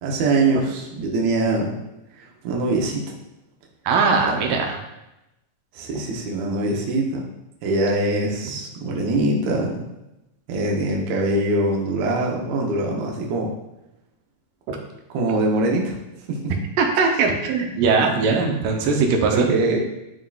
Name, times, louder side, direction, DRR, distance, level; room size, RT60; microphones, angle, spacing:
voice 1, 0.0-1.8 2.2-3.0 4.3-4.5 5.7-7.3 7.6-9.9 10.5-13.5 15.1-15.9 16.3-16.5 19.3-19.8, right 2 dB, 70° right, 0 dB, 1.9 m, -23 dB
voice 2, 3.9-4.8 14.7-14.8 16.8-19.5, right 4 dB, 90° right, 2 dB, 2.4 m, -20 dB
11.0 x 3.8 x 2.3 m, 0.92 s
omnidirectional pair, 3.8 m